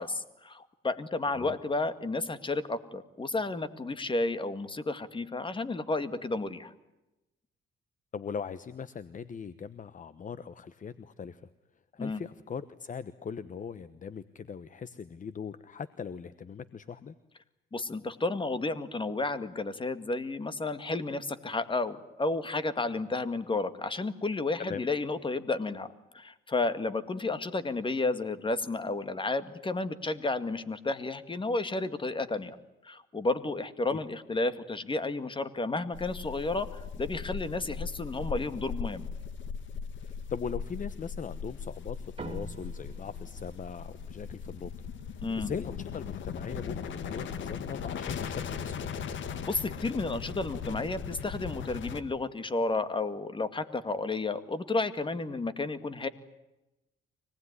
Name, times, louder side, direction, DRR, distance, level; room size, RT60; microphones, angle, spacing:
voice 1, 0.0-6.7 12.0-12.2 17.7-32.6 32.8-39.1 45.2-45.5 49.4-56.1, left 3 dB, 25° left, 12 dB, 2.1 m, -32 dB
voice 2, 8.1-11.5 11.9-17.1 24.6-24.8 33.9-34.0 40.0-44.7 45.1-49.0, left 6 dB, 40° left, 14 dB, 1.1 m, -40 dB
sound 1, 35.9-52.0, left 6 dB, 75° left, 2.0 m, -38 dB
sound 2, 42.2-46.9, right 4 dB, 30° right, 2.6 m, -49 dB
25.0 x 19.5 x 9.8 m, 0.97 s
cardioid pair, 90°, 20 cm